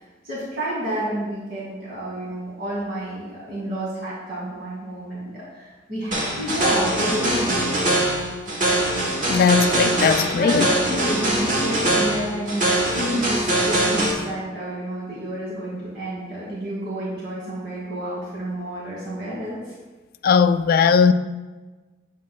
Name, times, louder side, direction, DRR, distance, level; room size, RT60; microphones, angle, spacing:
voice 1, 0.2-8.0 10.3-19.7, equal, 60° right, 2.3 m, -30 dB
sound 1, 6.1-14.1, right 1 dB, 40° right, 1.2 m, -22 dB
voice 2, 9.3-10.7 20.2-21.1, left 6 dB, 50° left, 0.3 m, -18 dB
8.3 x 8.1 x 2.3 m
head